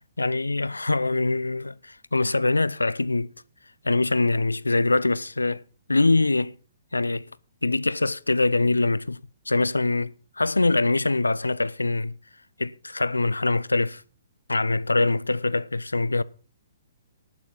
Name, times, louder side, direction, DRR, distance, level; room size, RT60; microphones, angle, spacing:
voice 1, 0.2-3.3 3.8-5.6 5.9-6.5 6.9-7.3 7.6-9.2 9.5-12.1 12.6-14.0 14.5-16.2, left 2 dB, 80° left, 0.5 m, -23 dB
12.0 x 9.2 x 5.6 m
figure-of-eight pair, 120°, 0 cm